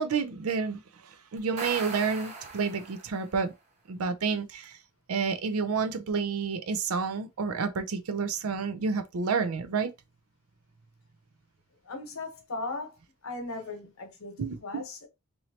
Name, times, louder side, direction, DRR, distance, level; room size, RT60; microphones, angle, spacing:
voice 1, 0.0-3.5 3.9-4.8 5.1-9.9 14.4-14.8, right 5 dB, 85° right, 0.5 m, -30 dB
sound 1, 1.4-3.3, right 3 dB, 30° right, 0.9 m, -39 dB
voice 2, 11.8-13.0 13.2-15.1, left 3 dB, 75° left, 1.0 m, -38 dB
3.1 x 2.7 x 2.8 m
head